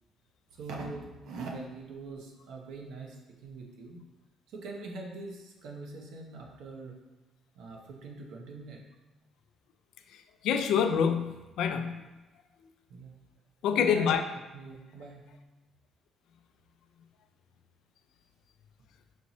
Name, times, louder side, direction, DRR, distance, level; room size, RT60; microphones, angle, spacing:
voice 1, 0.5-4.0 4.5-7.0 7.5-8.8 12.9-13.2 13.7-14.1 14.5-15.2, right 2 dB, 80° right, 1 dB, 0.7 m, -42 dB
voice 2, 10.4-12.0 13.6-14.2, left 7 dB, 80° left, 7 dB, 0.3 m, -26 dB
5.4 x 2.7 x 2.9 m, 1.1 s
cardioid pair, 150°, 0 cm